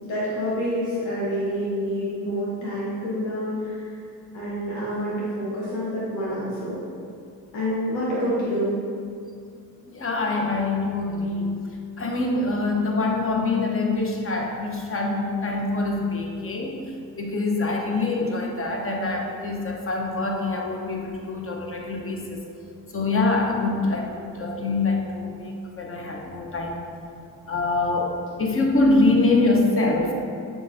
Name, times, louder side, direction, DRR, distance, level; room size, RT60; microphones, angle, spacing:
voice 1, 0.0-3.9 4.3-6.8 7.5-8.7, equal, 80° left, -8 dB, 1.0 m, -27 dB
voice 2, 9.8-11.6 12.0-16.8 17.2-22.4 22.9-26.8 27.5-30.1, left 2 dB, 30° left, 0 dB, 0.8 m, -24 dB
6.9 x 2.6 x 2.6 m, 2.3 s
supercardioid pair, 50°, 42 cm